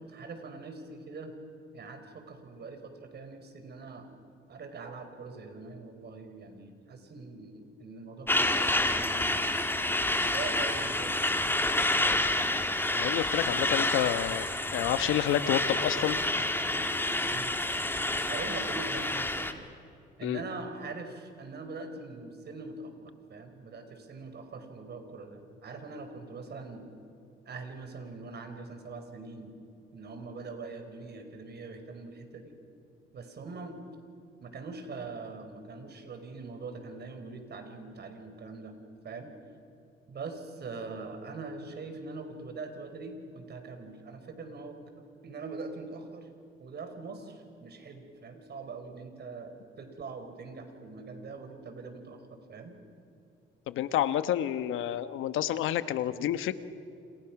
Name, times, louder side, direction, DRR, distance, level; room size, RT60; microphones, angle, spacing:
voice 1, 0.0-1.3 1.7-4.1 4.5-9.4 10.1-11.2 17.2-17.5 18.3-19.5 20.2-26.9 27.5-29.5 29.9-32.6 33.1-33.8 34.4-38.7 39.0-39.3 40.1-46.3 46.6-52.7, right 3 dB, 55° right, 6 dB, 4.6 m, -42 dB
Truck, 8.3-19.5, left 1 dB, 10° left, 2.3 m, -28 dB
voice 2, 12.9-14.5 14.7-16.2 20.2-20.4 53.7-56.5, left 11 dB, 85° left, 13 dB, 1.2 m, -29 dB
29.5 x 27.0 x 6.0 m, 2.7 s
cardioid pair, 90°, 20 cm